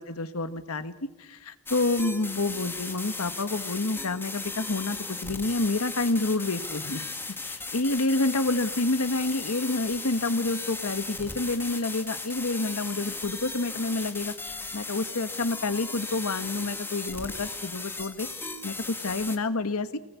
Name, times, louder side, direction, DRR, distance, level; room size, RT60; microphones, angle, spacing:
voice 1, 0.0-7.1 7.4-20.0, left 2 dB, 70° left, 11 dB, 1.4 m, -29 dB
sound 1, 1.7-19.4, left 3 dB, 10° left, 1.8 m, -36 dB
26.0 x 20.0 x 8.3 m, 1.0 s
head